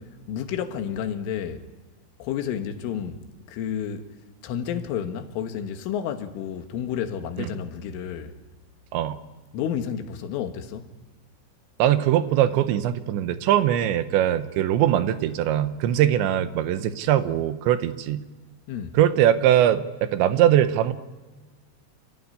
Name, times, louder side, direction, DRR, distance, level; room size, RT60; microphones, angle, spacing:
voice 1, 0.0-1.6 2.2-3.2 3.5-4.1 4.4-8.4 9.5-10.9 18.7-19.0, left 8 dB, 85° left, 4.0 m, -31 dB
voice 2, 11.8-18.2 18.9-20.9, right 11 dB, 75° right, 3.0 m, -21 dB
28.0 x 15.0 x 9.7 m
omnidirectional pair, 5.5 m